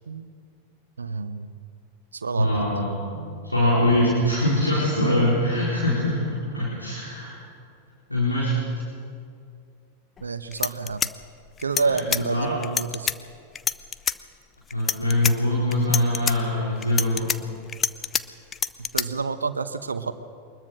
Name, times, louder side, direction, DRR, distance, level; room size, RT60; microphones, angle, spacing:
voice 1, 1.0-1.6 2.1-2.8 3.1-3.5 10.2-11.1 11.6-13.1 18.9-20.1, right 4 dB, 75° right, 11 dB, 0.9 m, -29 dB
voice 2, 2.4-2.9 3.4-7.4 8.1-8.6 11.8-12.5 14.7-17.3, left 1 dB, 85° left, -6 dB, 4.2 m, -23 dB
sound 1, 10.2-10.3 10.5-12.2 12.6-13.2 13.6-14.2 14.7-15.3 15.7-16.4 16.8-18.2 18.5-19.1, left 7 dB, 20° left, 0.6 m, -26 dB
23.0 x 20.5 x 6.4 m, 2.3 s
figure-of-eight pair, 90°, 0 cm